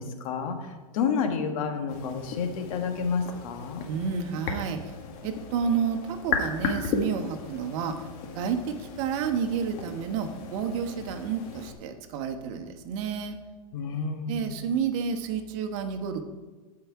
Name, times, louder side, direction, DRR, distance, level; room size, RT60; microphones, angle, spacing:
voice 1, 0.0-3.8 13.7-14.6, left 5 dB, 60° left, 5 dB, 1.5 m, -30 dB
sound 1, 1.9-11.7, left 5 dB, 45° left, 1.6 m, -36 dB
voice 2, 3.9-4.8 5.2-7.9 8.3-13.4 14.3-16.2, right 6 dB, 50° right, 6 dB, 1.1 m, -30 dB
14.0 x 4.8 x 4.7 m, 1.3 s
hypercardioid pair, 125°, 20 cm